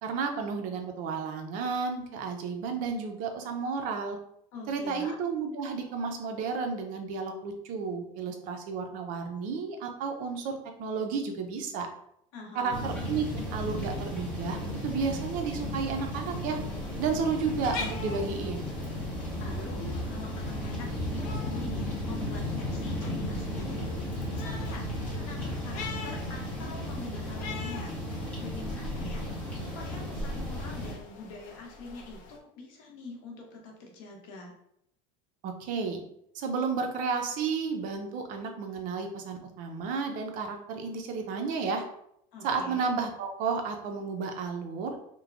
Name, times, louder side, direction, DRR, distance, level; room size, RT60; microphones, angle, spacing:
voice 1, 0.0-4.2 4.7-11.9 12.5-16.6 17.0-18.7 35.4-36.0 36.3-41.8 42.4-45.0, right 5 dB, 50° right, 4 dB, 0.5 m, -32 dB
voice 2, 4.5-5.2 12.3-12.8 19.4-23.9 24.3-24.9 25.1-34.6 42.3-42.9, left 3 dB, 75° left, 0 dB, 0.8 m, -45 dB
sound 1, 12.7-30.9, left 1 dB, 10° left, 0.9 m, -34 dB
sound 2, 16.5-32.4, left 3 dB, 50° left, 0.4 m, -44 dB
2.9 x 2.1 x 2.4 m, 0.74 s
cardioid pair, 145°, 17 cm